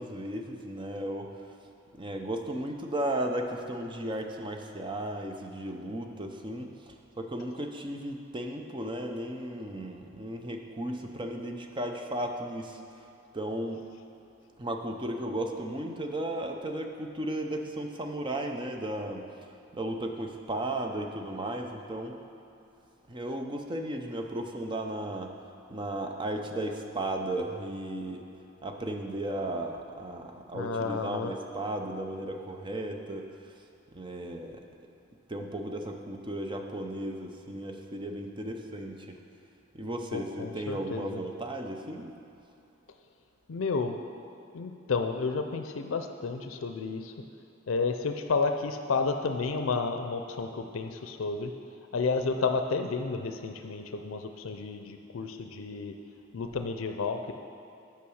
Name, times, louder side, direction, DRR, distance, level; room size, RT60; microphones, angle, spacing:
voice 1, 0.0-1.4 1.9-6.8 7.2-12.8 13.3-13.8 14.6-19.3 19.7-22.2 23.1-25.3 25.7-28.2 28.6-33.3 33.9-34.6 35.3-39.2 39.7-42.1, right 1 dB, 25° right, 3 dB, 0.7 m, -35 dB
voice 2, 30.5-31.3 40.1-41.2 43.5-44.0 44.5-47.1 47.7-51.5 51.9-55.9 56.3-57.3, left 4 dB, 80° left, 6 dB, 0.5 m, -31 dB
8.6 x 5.9 x 6.3 m, 2.8 s
head